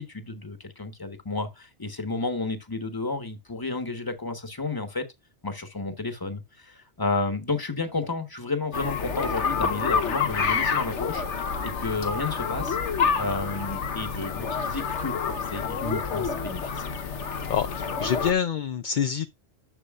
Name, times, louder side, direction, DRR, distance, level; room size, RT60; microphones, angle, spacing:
voice 1, 0.0-5.1 5.4-11.2 11.6-12.8 13.2-16.8, left 3 dB, 20° left, 1.3 m, -31 dB
sound 1, 8.7-18.3, left 6 dB, 90° left, 1.3 m, -28 dB
voice 2, 17.5-19.3, left 8 dB, 55° left, 0.6 m, -26 dB
11.0 x 6.7 x 2.4 m
omnidirectional pair, 1.2 m